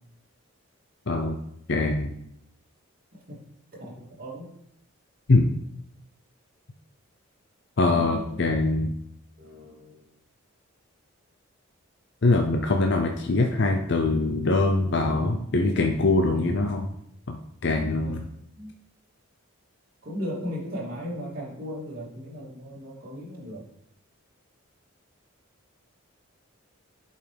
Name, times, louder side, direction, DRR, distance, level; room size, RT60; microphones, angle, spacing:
voice 1, 1.1-1.4 1.7-2.1 5.3-5.5 7.8-8.9 12.2-16.9 17.3-18.3, left 2 dB, 50° left, 3 dB, 0.6 m, -23 dB
voice 2, 3.8-4.5 7.8-8.4 9.4-10.1 15.0-15.5 16.2-16.7 17.8-18.2 18.6-18.7 20.0-23.7, equal, 40° right, -5 dB, 2.8 m, -37 dB
11.0 x 5.4 x 3.4 m, 0.74 s
head